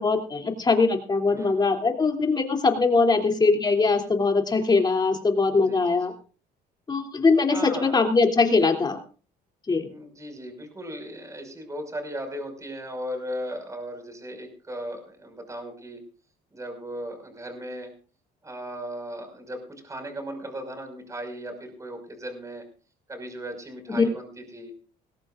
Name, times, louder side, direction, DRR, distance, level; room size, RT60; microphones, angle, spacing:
voice 1, 0.0-6.1 6.9-9.0 9.7-9.9 23.9-24.0, left 4 dB, 25° left, 3 dB, 3.1 m, -22 dB
voice 2, 1.3-1.9 5.5-6.0 7.5-8.0 9.7-16.0 16.5-17.9 18.4-22.6 23.1-24.7, equal, 20° right, 5 dB, 5.7 m, -37 dB
21.0 x 17.5 x 2.6 m, 0.38 s
cardioid pair, 110°, 17 cm